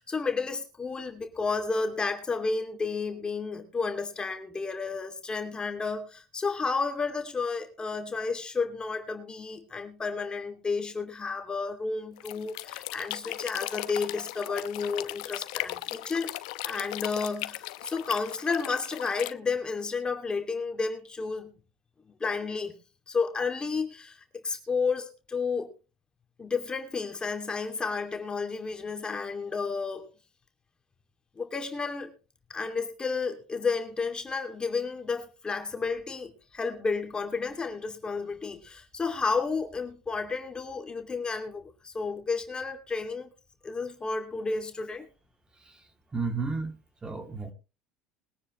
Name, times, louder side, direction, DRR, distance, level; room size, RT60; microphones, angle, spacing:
voice 1, 0.0-16.4 16.6-21.5 22.2-22.7 23.1-25.7 26.4-30.1 31.4-32.1 32.5-43.3 43.6-45.1, left 4 dB, 20° left, 2.6 m, -32 dB
sound 1, 12.2-19.3, left 19 dB, 80° left, 0.8 m, -37 dB
voice 2, 46.1-46.7 47.0-47.5, right 4 dB, 20° right, 2.9 m, -32 dB
21.5 x 9.8 x 3.2 m
supercardioid pair, 90°, 4 cm